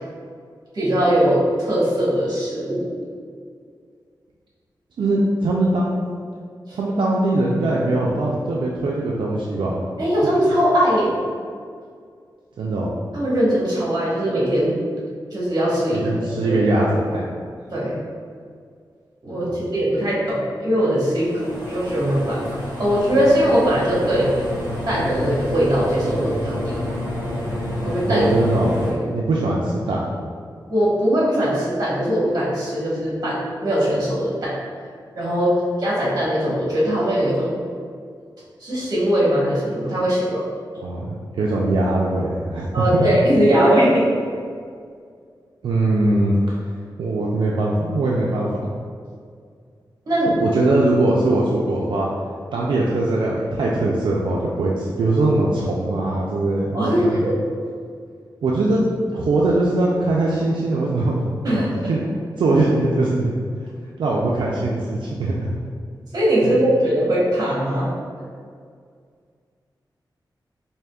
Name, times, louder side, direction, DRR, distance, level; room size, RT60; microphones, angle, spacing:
voice 1, 0.7-2.8 6.7-6.8 10.0-11.1 13.1-14.7 15.3-16.1 16.5-16.6 17.7-18.0 19.2-22.4 22.8-24.3 24.9-26.8 27.8-28.3 28.8-29.0 30.7-34.5 35.1-37.5 38.6-40.5 42.7-44.1 50.1-50.3 56.7-57.3 61.4-61.8 66.1-67.9, equal, 50° right, -7 dB, 1.2 m, -20 dB
voice 2, 5.0-6.0 6.7-9.8 10.2-10.3 12.6-12.9 15.9-17.3 19.4-19.5 28.1-30.1 40.8-43.1 45.6-46.6 47.0-48.6 50.3-52.1 52.5-57.1 58.4-62.0 62.4-63.3 64.0-65.5 66.4-66.5, right 2 dB, 85° right, -4 dB, 0.4 m, -21 dB
sound 1, 21.1-28.9, left 1 dB, 20° right, 1.1 m, -29 dB
4.9 x 2.7 x 2.2 m, 2.1 s
wide cardioid pair, 165°, 8 cm